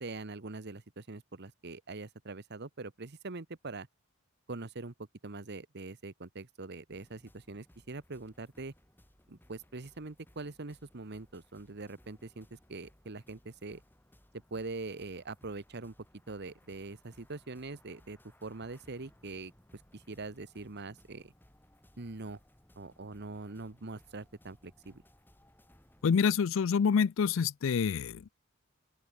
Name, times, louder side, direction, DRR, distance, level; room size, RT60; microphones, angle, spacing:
voice 1, 0.0-3.9 4.5-4.9 5.2-8.7 9.3-13.8 14.5-15.9 16.3-19.5 19.9-21.3 22.0-22.4 22.8-25.0, right 3 dB, 55° right, 1.1 m, -43 dB
sound 1, 6.9-26.2, equal, 10° left, 2.8 m, -63 dB
voice 2, 26.0-28.3, left 6 dB, 65° left, 0.4 m, -27 dB
open air
head